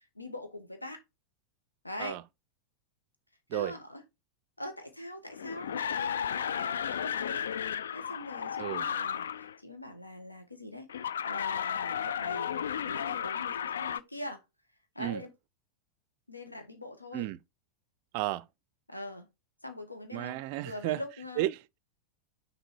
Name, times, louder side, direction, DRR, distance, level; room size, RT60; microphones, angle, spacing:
voice 1, 0.1-1.0 1.8-2.2 3.5-4.0 4.6-7.5 7.9-10.9 11.2-14.4 14.9-15.3 16.3-17.3 18.9-19.3 19.6-21.4, left 1 dB, 85° left, 1.4 m, -42 dB
sound 1, 5.3-9.6 10.9-14.0, left 8 dB, 65° left, 0.3 m, -33 dB
voice 2, 18.1-18.5 20.1-21.0 21.4-21.8, right 16 dB, 45° right, 0.4 m, -33 dB
6.5 x 4.1 x 4.3 m
figure-of-eight pair, 90°, 0 cm